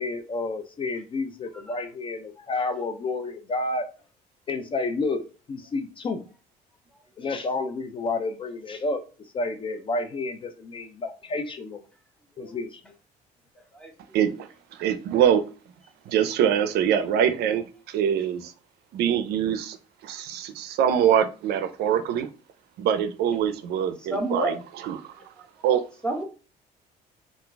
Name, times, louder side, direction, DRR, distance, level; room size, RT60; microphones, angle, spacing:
voice 1, 0.0-3.9 4.5-6.2 7.2-9.0 9.3-11.8 12.4-12.8, left 3 dB, 30° left, 8 dB, 0.3 m, -30 dB
voice 2, 14.1-15.4 16.1-18.5 18.9-19.8 20.0-22.3 22.8-24.5 24.8-25.1 25.6-25.8, right 9 dB, 75° right, 9 dB, 0.4 m, -24 dB
voice 3, 24.1-24.6 25.2-25.3 26.0-26.2, right 1 dB, 5° left, 2 dB, 0.8 m, -29 dB
2.4 x 2.2 x 3.8 m, 0.34 s
cardioid pair, 110°, 17 cm